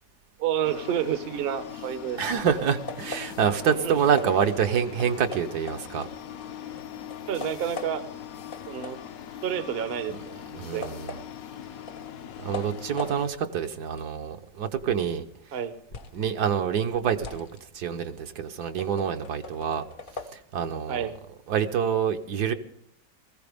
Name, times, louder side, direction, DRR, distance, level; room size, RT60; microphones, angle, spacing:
voice 1, 0.4-2.2 3.7-4.0 7.3-8.0 8.7-9.0 9.4-10.9 15.5-15.7 20.9-21.1, right 9 dB, 45° right, 11 dB, 0.8 m, -29 dB
sound 1, 0.6-13.3, left 10 dB, 65° left, 1.0 m, -41 dB
voice 2, 2.2-6.1 10.1-10.2 10.6-11.1 12.4-15.2 16.1-17.5 17.7-19.8 20.3-21.1 21.5-22.5, right 7 dB, 70° right, 7 dB, 1.4 m, -27 dB
sound 2, 2.9-6.5 6.8-8.2 8.5-16.3 16.6-20.3, left 3 dB, 45° left, 0.6 m, -42 dB
20.5 x 15.0 x 3.5 m, 0.72 s
omnidirectional pair, 1.9 m